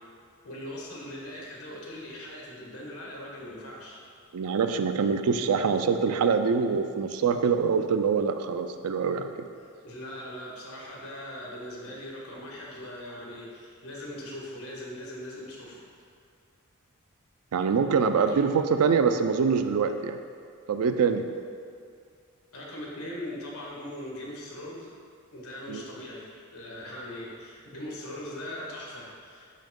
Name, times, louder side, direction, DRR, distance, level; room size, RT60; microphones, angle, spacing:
voice 1, 0.4-4.0 9.8-15.8 18.1-18.5 22.5-24.9 25.3-29.5, left 1 dB, 75° left, -3 dB, 1.3 m, -40 dB
voice 2, 4.3-9.5 17.5-20.2 20.7-21.3 25.7-25.8, right 5 dB, 85° right, 8 dB, 0.4 m, -24 dB
5.6 x 5.1 x 3.7 m, 2.3 s
head